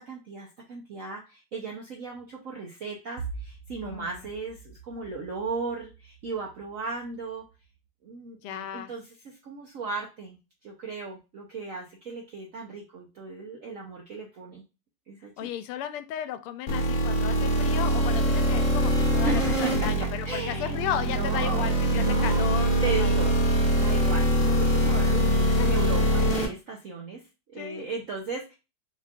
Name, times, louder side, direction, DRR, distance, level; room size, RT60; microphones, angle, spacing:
voice 1, 0.0-7.4 8.0-10.4 10.6-14.6 15.1-15.5 19.2-20.8 21.0-21.7 22.0-22.5 22.8-23.4 23.8-27.2 27.5-28.5, right 3 dB, 75° right, 0 dB, 0.7 m, -36 dB
voice 2, 3.8-4.3 8.4-8.9 15.4-23.1 25.5-25.8 27.6-27.9, left 10 dB, 85° left, 11 dB, 1.5 m, -35 dB
sound 1, 16.7-26.5, equal, 45° left, 1.3 m, -23 dB
4.5 x 3.6 x 2.4 m, 0.28 s
omnidirectional pair, 2.4 m